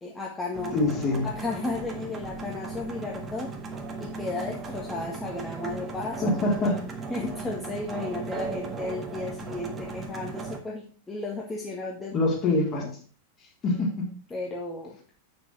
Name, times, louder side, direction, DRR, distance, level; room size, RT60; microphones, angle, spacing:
voice 1, 0.0-0.8 1.2-3.5 4.0-6.4 7.1-12.1 12.7-12.9 14.3-15.0, left 3 dB, 15° left, -3 dB, 1.8 m, -34 dB
sound 1, 0.5-10.6, right 4 dB, 20° right, 1.6 m, -37 dB
voice 2, 0.7-1.3 6.2-6.8 12.1-12.8 13.6-14.1, left 2 dB, 30° left, -1 dB, 3.5 m, -24 dB
8.2 x 6.9 x 4.6 m, 0.40 s
figure-of-eight pair, 90°, 0 cm